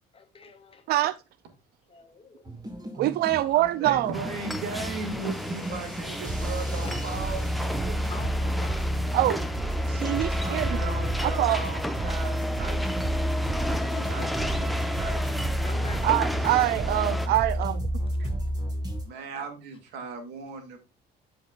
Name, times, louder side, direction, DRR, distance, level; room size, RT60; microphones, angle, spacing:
voice 1, 0.1-0.8 1.9-2.4 3.2-3.7 5.1-5.9 6.5-7.5 8.1-9.9 10.2-11.1 13.7-14.5 15.6-16.2 17.2-17.6 18.2-18.3, left 4 dB, 35° left, 1.9 m, -46 dB
sound 1, 2.4-19.0, equal, 20° right, 5.0 m, -30 dB
voice 2, 2.9-4.1 9.1-9.4 9.9-10.8 11.2-11.6 16.0-17.8 18.2-18.3, right 15 dB, 70° right, 0.4 m, -24 dB
voice 3, 3.8-8.0 10.4-13.2 14.1-14.3 14.6-14.7 14.9-15.2 15.5-15.6 19.0-20.8, right 5 dB, 90° right, 2.3 m, -37 dB
sound 2, 4.1-17.3, equal, ahead, 0.9 m, -33 dB
13.0 x 5.2 x 2.4 m
cardioid pair, 110°, 17 cm